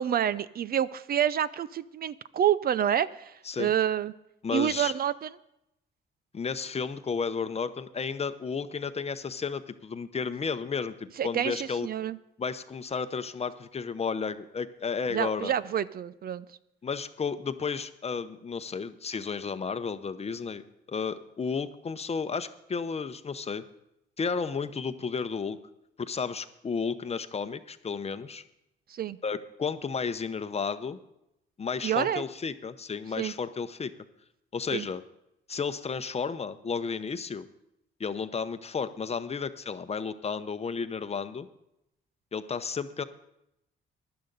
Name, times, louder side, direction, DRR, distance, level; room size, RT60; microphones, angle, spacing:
voice 1, 0.0-4.1 4.5-5.3 11.2-12.2 15.1-16.5 28.9-29.2 31.8-32.2 33.2-33.3 34.7-34.9, right 9 dB, 50° right, 17 dB, 0.5 m, -28 dB
voice 2, 4.4-4.9 6.3-11.0 11.2-11.9 12.4-15.5 16.8-20.6 20.9-23.6 24.2-25.6 26.0-28.4 29.2-31.0 31.6-33.9 34.5-35.0 35.5-37.5 38.0-41.5 42.3-43.0, left 5 dB, 30° left, 11 dB, 0.8 m, -32 dB
15.5 x 11.0 x 4.0 m, 0.83 s
cardioid pair, 90°, 20 cm